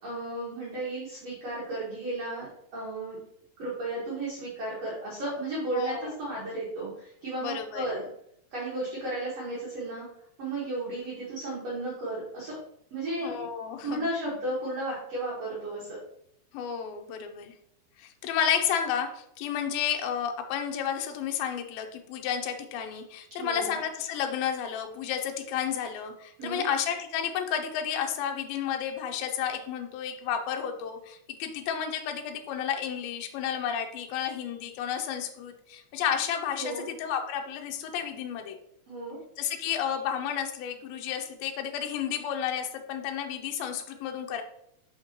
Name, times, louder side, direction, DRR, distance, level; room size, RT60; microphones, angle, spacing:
voice 1, 0.0-2.5 2.7-3.2 3.6-8.1 8.5-10.1 10.4-12.6 12.9-13.3 13.8-16.0 23.4-23.7 26.4-26.6 36.6-36.8 38.9-39.2, right 2 dB, 55° right, -6 dB, 2.2 m, -34 dB
voice 2, 5.7-6.1 7.4-7.9 13.2-14.1 16.5-17.5 18.0-38.6 39.4-44.4, left 8 dB, 85° left, 4 dB, 2.5 m, -31 dB
6.1 x 5.7 x 2.9 m, 0.74 s
omnidirectional pair, 4.3 m